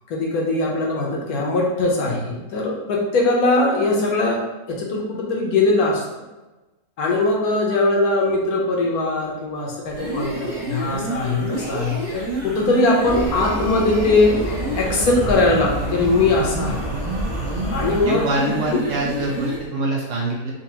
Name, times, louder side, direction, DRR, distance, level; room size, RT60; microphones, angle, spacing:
voice 1, 0.1-4.4 4.7-6.0 7.0-16.8 17.7-18.2 18.7-18.8, left 2 dB, 75° left, -2 dB, 1.2 m, -21 dB
sound 1, 9.9-19.7, right 1 dB, 35° right, 1.0 m, -29 dB
sound 2, 13.0-18.1, right 1 dB, 45° left, 0.5 m, -29 dB
voice 2, 18.1-20.5, right 2 dB, 65° right, -2 dB, 0.9 m, -25 dB
3.9 x 2.4 x 2.7 m, 1.1 s
omnidirectional pair, 1.6 m